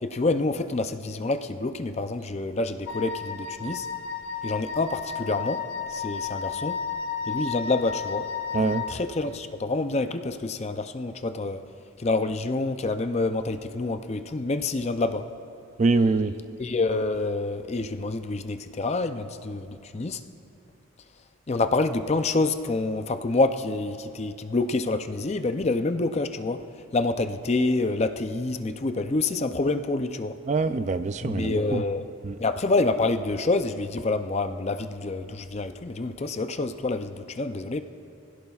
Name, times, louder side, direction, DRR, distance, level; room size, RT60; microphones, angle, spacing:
voice 1, 0.0-3.9 4.4-6.8 7.3-8.3 8.6-11.6 12.0-15.3 16.6-20.2 21.5-30.4 31.2-32.1 32.4-37.8, left 3 dB, 30° left, 9 dB, 0.4 m, -27 dB
Wind instrument woodwind instrument, 2.9-9.0, left 6 dB, 60° left, 1.1 m, -33 dB
voice 2, 8.5-8.8 15.8-16.3 30.5-31.8 32.2-32.4, right 3 dB, 35° right, 11 dB, 0.3 m, -24 dB
24.0 x 16.0 x 2.4 m, 2.6 s
head